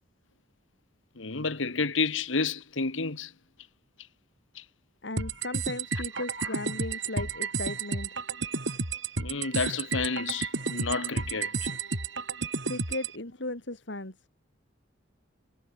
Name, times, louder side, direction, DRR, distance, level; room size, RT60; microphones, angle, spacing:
voice 1, 1.1-3.3 4.5-4.6 9.2-11.7, left 4 dB, 75° left, 1.7 m, -30 dB
voice 2, 5.0-8.1 12.7-14.1, left 2 dB, 60° left, 3.0 m, -36 dB
sound 1, 5.2-13.2, right 4 dB, 70° right, 5.0 m, -32 dB
head